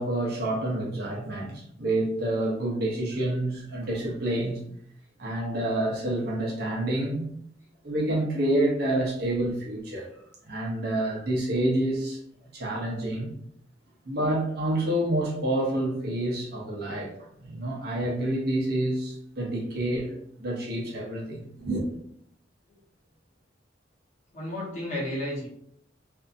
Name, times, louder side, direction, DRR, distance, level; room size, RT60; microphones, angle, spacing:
voice 1, 0.0-4.6 5.2-7.3 7.8-10.1 10.5-12.2 12.5-13.3 14.0-17.1 17.4-20.1 20.4-21.8, right 1 dB, 55° right, 0.7 m, -28 dB
voice 2, 24.3-25.5, left 1 dB, 40° left, 1.1 m, -32 dB
2.7 x 2.5 x 2.5 m
head